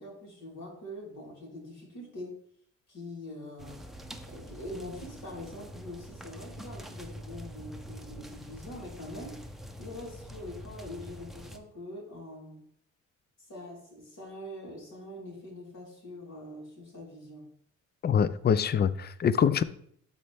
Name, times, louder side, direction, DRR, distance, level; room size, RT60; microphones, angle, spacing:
voice 1, 0.0-2.4 2.9-3.8 4.3-9.5 9.8-12.6 13.4-17.5, left 1 dB, 60° left, 3.9 m, -43 dB
sound 1, 3.6-11.6, equal, ahead, 0.8 m, -45 dB
voice 2, 18.0-19.6, left 7 dB, 35° left, 0.5 m, -24 dB
12.5 x 4.3 x 3.5 m
cardioid pair, 90°, 30 cm